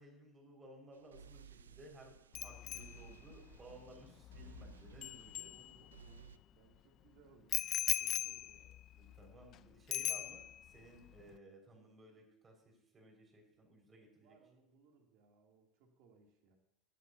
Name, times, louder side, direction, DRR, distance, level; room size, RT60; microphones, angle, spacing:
voice 1, 0.0-5.5 8.9-14.4, right 1 dB, 30° right, 2 dB, 5.5 m, -58 dB
sound 1, 0.9-6.4, right 7 dB, 90° right, 0.4 m, -58 dB
Bicycle bell, 2.3-6.2 7.5-9.6 9.9-10.8 11.1-11.3, left 12 dB, 50° left, 0.4 m, -40 dB
voice 2, 5.5-9.2 14.2-16.6, right 5 dB, 65° right, 1 dB, 2.9 m, -67 dB
19.0 x 11.0 x 2.8 m, 0.84 s
hypercardioid pair, 80°, 0 cm